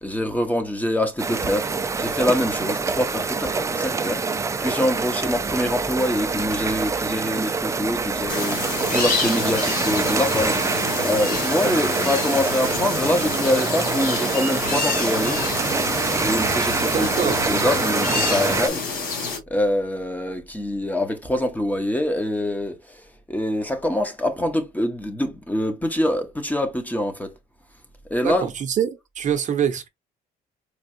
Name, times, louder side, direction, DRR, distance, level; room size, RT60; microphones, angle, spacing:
voice 1, 0.0-1.7 2.0-4.2 4.6-15.4 16.1-19.2 19.5-23.0 23.3-27.3 28.1-28.5, left 1 dB, 10° left, 0.8 m, -25 dB
sound 1, 1.2-18.7, right 4 dB, 15° right, 0.4 m, -25 dB
sound 2, 8.3-19.4, left 4 dB, 55° left, 2.1 m, -28 dB
voice 2, 16.9-17.4 28.2-29.9, right 8 dB, 45° right, 0.8 m, -25 dB
4.4 x 2.3 x 2.6 m
cardioid pair, 110°, 17 cm